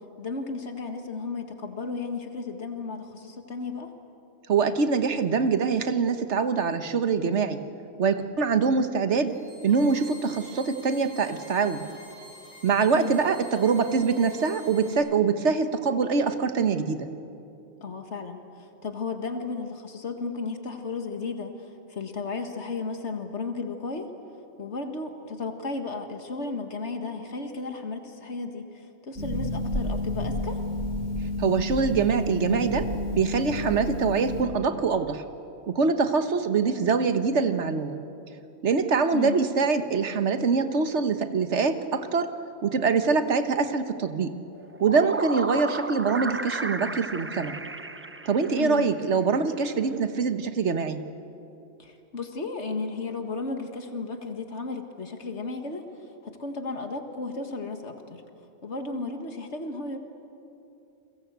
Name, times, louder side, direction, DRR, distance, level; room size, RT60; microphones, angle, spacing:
voice 1, 0.2-3.9 12.9-13.2 17.8-24.1 24.6-30.6 39.1-39.4 48.5-48.9 51.8-55.9 56.2-58.2 58.6-60.0, left 3 dB, 90° left, 6 dB, 2.1 m, -34 dB
voice 2, 4.5-7.6 8.0-11.8 12.6-17.1 31.4-35.2 35.7-38.0 38.6-42.3 42.6-44.3 44.8-47.6 48.3-51.0, right 5 dB, 85° right, 9 dB, 1.5 m, -24 dB
sound 1, 9.2-14.9, equal, 50° right, 8.4 m, -48 dB
Harp, 29.2-34.4, left 1 dB, 60° left, 4.9 m, -30 dB
sound 2, 44.5-49.0, right 2 dB, 15° right, 0.5 m, -34 dB
30.0 x 22.0 x 8.1 m, 2.8 s
omnidirectional pair, 1.1 m